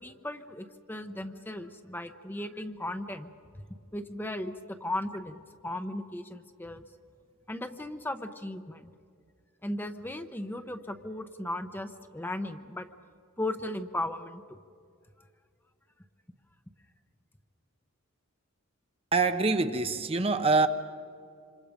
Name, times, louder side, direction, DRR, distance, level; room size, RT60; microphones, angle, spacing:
voice 1, 0.0-3.3 3.9-6.8 7.5-8.9 9.6-12.9 13.4-14.4, left 1 dB, 10° left, 0.8 m, -36 dB
voice 2, 19.1-20.7, right 3 dB, 30° right, 0.9 m, -25 dB
27.0 x 26.5 x 5.1 m
head